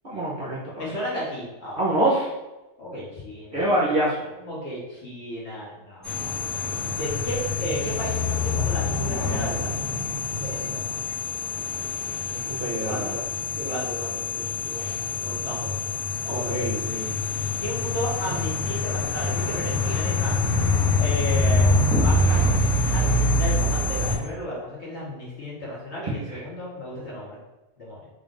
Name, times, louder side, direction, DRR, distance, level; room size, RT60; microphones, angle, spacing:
voice 1, 0.0-0.9 1.8-2.3 3.5-4.3 12.3-13.2 16.3-17.1 26.0-26.4, right 1 dB, 45° right, -6 dB, 0.8 m, -26 dB
voice 2, 0.8-1.8 2.8-3.7 4.4-6.4 6.9-9.7 10.4-10.8 12.7-13.2 13.6-15.7 16.3-16.6 17.6-20.5 21.0-27.4 27.8-28.0, equal, 50° left, -6 dB, 1.4 m, -34 dB
sound 1, 6.0-24.2, left 2 dB, ahead, 0.8 m, -25 dB
3.7 x 2.5 x 3.7 m, 1.0 s
omnidirectional pair, 1.6 m